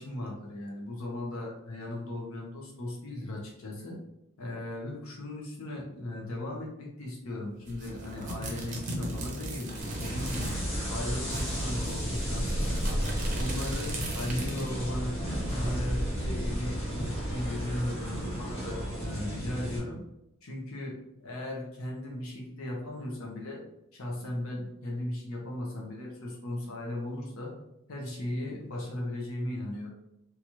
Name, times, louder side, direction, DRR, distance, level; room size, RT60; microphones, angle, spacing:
voice 1, 0.0-4.0 4.4-10.5 10.9-12.8 13.4-15.2 15.5-20.0 20.4-20.9 21.2-23.6 23.9-27.5 27.9-29.9, left 1 dB, 65° left, -2 dB, 0.7 m, -37 dB
sound 1, 7.7-10.7 10.9-11.0 11.3-14.8, right 1 dB, 35° right, 0.6 m, -38 dB
sound 2, 9.8-19.8, equal, 25° left, 1.0 m, -32 dB
2.8 x 2.3 x 2.9 m, 0.84 s
head